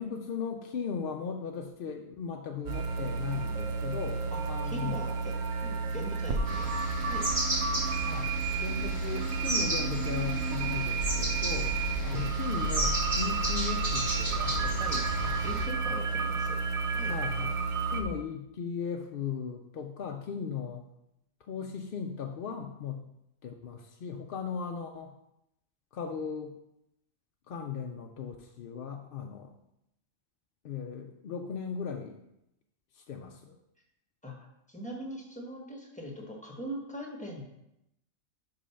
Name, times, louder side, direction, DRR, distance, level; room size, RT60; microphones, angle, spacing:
voice 1, 0.0-4.2 4.5-5.0 8.1-11.8 12.0-14.8 17.1-17.6 17.9-20.9 21.5-23.0 23.4-25.1 25.9-26.6 27.5-29.5 30.6-32.2 32.9-33.6, left 6 dB, 60° left, 2 dB, 0.7 m, -37 dB
sound 1, 2.7-18.0, right 4 dB, 70° right, 0.9 m, -31 dB
voice 2, 4.3-5.3 5.6-6.7 7.1-7.3 12.1-12.3 14.4-16.6 16.9-17.1 34.2-34.4 34.7-37.4, equal, 5° left, -1 dB, 1.2 m, -41 dB
sound 2, 6.5-15.7, right 1 dB, 40° right, 1.8 m, -34 dB
5.2 x 4.6 x 5.6 m, 0.83 s
omnidirectional pair, 1.2 m